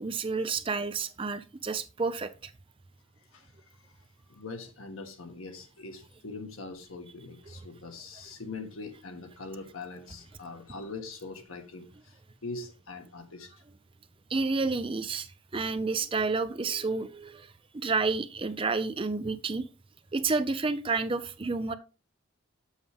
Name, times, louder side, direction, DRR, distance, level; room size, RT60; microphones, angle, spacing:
voice 1, 0.0-2.5 14.3-19.6 20.1-21.7, right 4 dB, 25° right, 0.4 m, -30 dB
voice 2, 3.3-13.6, left 3 dB, 85° left, 1.4 m, -43 dB
7.2 x 7.1 x 3.4 m
head